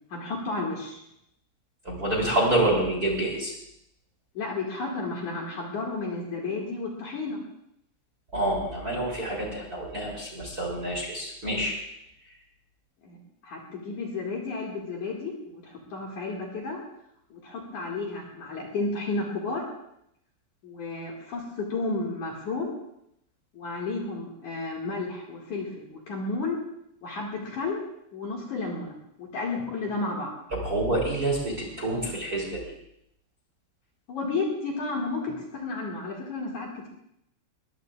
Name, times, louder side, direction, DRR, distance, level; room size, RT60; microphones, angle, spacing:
voice 1, 0.1-1.0 4.3-7.4 13.0-16.8 17.3-19.6 20.6-22.7 23.5-26.6 27.0-27.8 28.1-30.4 34.1-36.9, left 3 dB, 50° left, -2 dB, 2.9 m, -32 dB
voice 2, 1.8-3.5 8.3-11.7 30.6-32.6, right 1 dB, 25° right, 0 dB, 2.9 m, -27 dB
21.5 x 21.0 x 2.4 m, 0.78 s
omnidirectional pair, 5.3 m